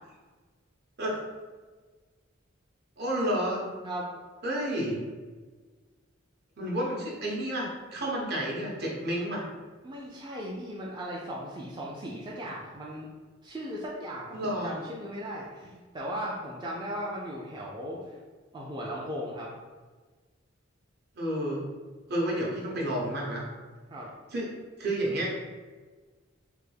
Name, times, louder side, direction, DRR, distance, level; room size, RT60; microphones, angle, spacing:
voice 1, 3.0-3.7 4.4-5.0 6.6-9.4 14.3-14.7 21.1-21.6 22.1-23.4 24.3-24.5 24.8-25.3, right 1 dB, 55° right, -3 dB, 0.8 m, -30 dB
voice 2, 9.8-13.1 13.4-18.2 18.5-19.5 23.9-24.1, equal, 20° right, -5 dB, 0.3 m, -37 dB
3.4 x 2.2 x 3.2 m, 1.4 s
head